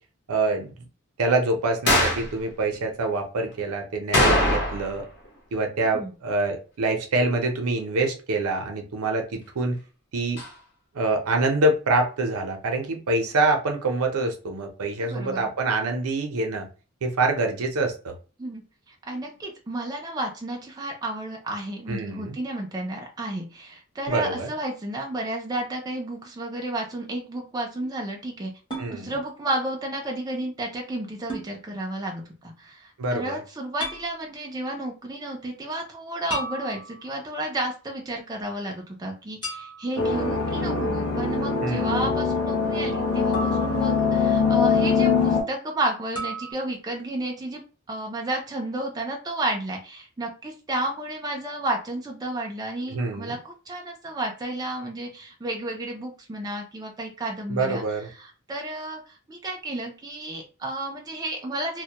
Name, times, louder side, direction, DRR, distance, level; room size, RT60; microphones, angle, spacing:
voice 1, 0.3-0.7 1.2-5.1 5.5-9.8 10.1-10.4 10.9-16.7 17.0-18.1 21.9-22.4 24.1-24.5 28.8-29.1 33.0-33.4 41.6-42.1 52.9-53.4 57.5-58.1, right 2 dB, 75° right, 3 dB, 0.6 m, -25 dB
sound 1, 1.9-2.3 4.1-5.0 5.3-5.4 10.4-10.5, left 1 dB, 50° left, 0.8 m, -21 dB
voice 2, 15.0-15.5 18.4-18.6 18.9-28.5 28.9-47.6 47.9-57.8 58.2-61.8, right 1 dB, 15° right, 0 dB, 0.3 m, -32 dB
sound 2, 28.7-28.9 31.3-31.5 33.8-34.1 36.3-37.2 39.4-40.0 43.3-44.3 46.2-46.5, right 1 dB, 20° left, 0.9 m, -34 dB
sound 3, 40.0-45.4, left 5 dB, 85° left, 0.6 m, -23 dB
2.1 x 2.1 x 2.8 m, 0.35 s
head